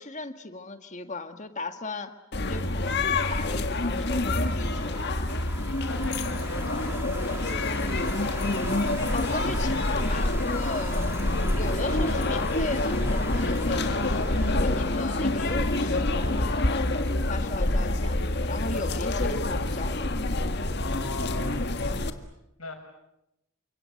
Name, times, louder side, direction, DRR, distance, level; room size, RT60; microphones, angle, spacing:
voice 1, 0.0-2.1 2.5-5.4 9.1-16.9 17.3-20.1 21.9-22.1, left 3 dB, 35° left, 8 dB, 1.8 m, -37 dB
sound 1, 2.3-22.1, left 2 dB, 50° left, 1.7 m, -27 dB
sound 2, 4.5-17.1, right 2 dB, 10° right, 2.6 m, -42 dB
voice 2, 5.8-8.3 20.8-21.6 22.6-22.7, left 3 dB, 80° left, 4 dB, 7.0 m, -40 dB
29.5 x 25.5 x 7.9 m, 0.87 s
head